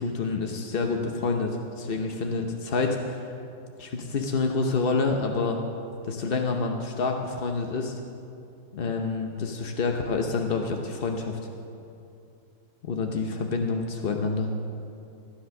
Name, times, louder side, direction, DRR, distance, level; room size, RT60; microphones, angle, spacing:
voice 1, 0.0-3.3 3.8-5.6 6.0-8.0 8.7-11.4 12.8-14.5, left 4 dB, 60° left, 3 dB, 0.5 m, -28 dB
14.5 x 10.0 x 6.4 m, 2.6 s
omnidirectional pair, 2.1 m